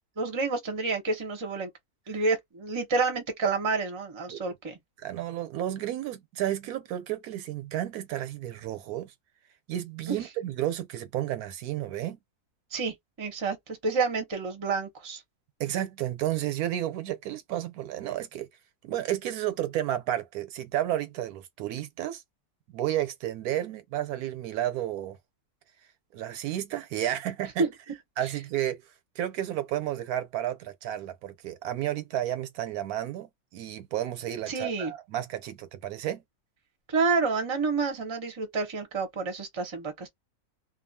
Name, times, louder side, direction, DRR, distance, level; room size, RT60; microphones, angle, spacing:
voice 1, 0.2-1.7 2.1-4.8 10.1-10.2 12.7-15.2 27.6-27.7 34.5-34.9 36.9-40.1, right 4 dB, 25° right, 0.6 m, -29 dB
voice 2, 5.0-9.1 9.7-12.2 15.6-18.5 18.8-22.2 22.7-25.2 26.1-27.7 28.2-28.8 29.2-36.2, right 12 dB, 80° right, 1.1 m, -32 dB
2.6 x 2.3 x 2.6 m
omnidirectional pair, 1.6 m